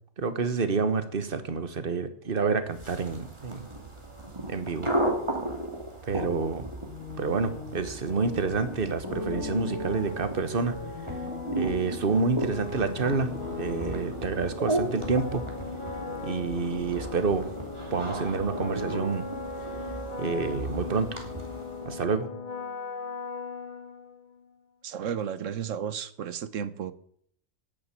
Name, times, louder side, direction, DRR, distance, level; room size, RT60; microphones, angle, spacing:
voice 1, 0.2-3.7 4.5-4.9 6.0-6.7 7.2-10.8 11.5-13.3 13.6-15.4 16.2-17.4 17.9-19.2 20.2-21.2 21.8-22.3, right 4 dB, 45° right, 1.5 m, -28 dB
sound 1, 2.7-22.0, right 1 dB, 20° right, 2.7 m, -36 dB
sound 2, 6.8-24.4, left 4 dB, 35° left, 1.8 m, -39 dB
sound 3, 9.0-15.1, left 3 dB, 70° left, 2.2 m, -38 dB
voice 2, 24.8-26.9, right 8 dB, 80° right, 1.2 m, -33 dB
11.0 x 9.0 x 9.2 m
omnidirectional pair, 1.3 m